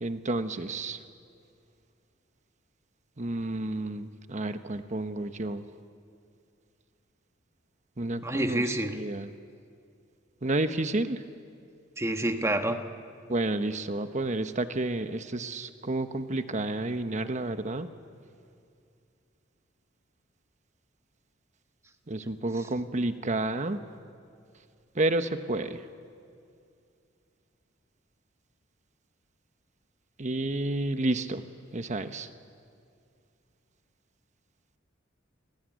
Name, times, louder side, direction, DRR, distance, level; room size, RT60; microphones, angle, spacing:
voice 1, 0.0-1.0 3.2-5.6 8.0-8.6 9.0-9.3 10.4-11.2 13.3-17.9 22.1-23.8 25.0-25.8 30.2-31.4 31.7-32.3, right 2 dB, 40° right, 9 dB, 1.1 m, -30 dB
voice 2, 8.2-9.0 12.0-12.8 22.6-22.7, right 1 dB, 15° right, 6 dB, 1.3 m, -28 dB
28.0 x 20.0 x 9.4 m, 2.4 s
head